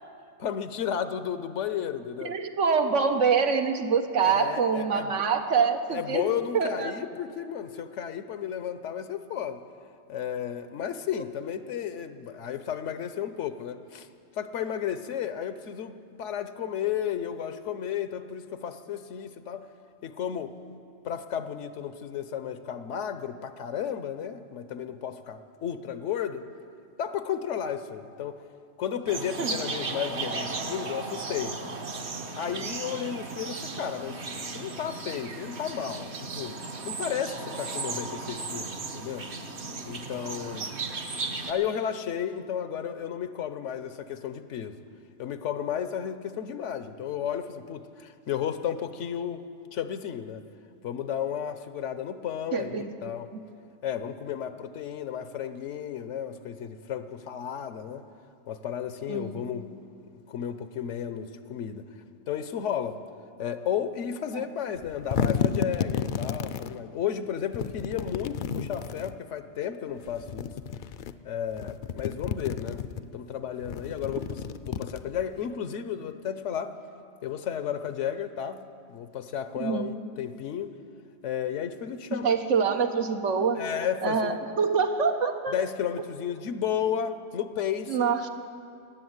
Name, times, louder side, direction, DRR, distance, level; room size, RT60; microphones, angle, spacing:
voice 1, 0.4-2.3 4.2-5.1 5.9-9.6 10.1-14.1 14.3-19.6 20.0-20.5 21.0-26.5 27.0-28.4 28.8-31.6 32.4-34.2 34.5-36.6 36.8-39.3 39.9-40.8 41.5-44.8 45.2-49.4 49.7-50.4 50.8-53.3 53.8-58.0 58.5-59.7 60.3-61.9 62.3-63.0 63.4-70.6 71.2-74.4 74.6-76.7 77.2-80.7 81.2-82.3 83.6-84.4 85.5-88.1, left 9 dB, 80° left, 11 dB, 1.1 m, -33 dB
voice 2, 2.2-6.3 6.5-7.0 29.4-29.5 52.5-53.4 59.1-59.5 64.3-64.5 79.6-79.9 82.1-83.6 84.0-85.5 87.9-88.3, right 5 dB, 85° right, 6 dB, 1.3 m, -25 dB
sound 1, 29.1-41.5, right 3 dB, 65° right, 1.3 m, -35 dB
sound 2, 64.8-66.7 67.5-69.2 70.1-71.1 71.5-73.0 73.6-75.4, left 7 dB, 60° left, 0.5 m, -31 dB
20.0 x 7.9 x 7.9 m, 2.4 s
omnidirectional pair, 1.2 m